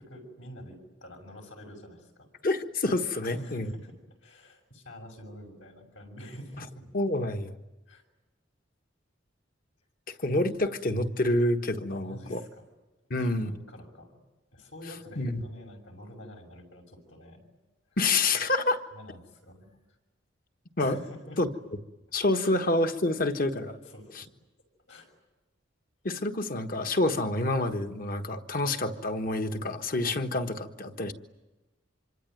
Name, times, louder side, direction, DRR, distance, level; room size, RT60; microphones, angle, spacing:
voice 1, 0.0-2.3 3.2-6.9 7.9-8.0 10.1-10.2 11.9-12.7 13.2-14.2 14.5-17.5 17.9-18.0 18.9-19.8 20.8-21.4 22.4-22.5 23.8-24.3 24.9-25.1, equal, 80° left, 3 dB, 6.5 m, -47 dB
voice 2, 2.4-3.7 6.9-7.5 10.1-12.4 13.1-13.5 15.2-15.4 18.0-18.8 20.8-21.0 21.4-21.5 22.1-23.7 26.0-31.1, left 2 dB, 45° left, 7 dB, 1.4 m, -27 dB
26.0 x 24.5 x 9.3 m, 1.1 s
head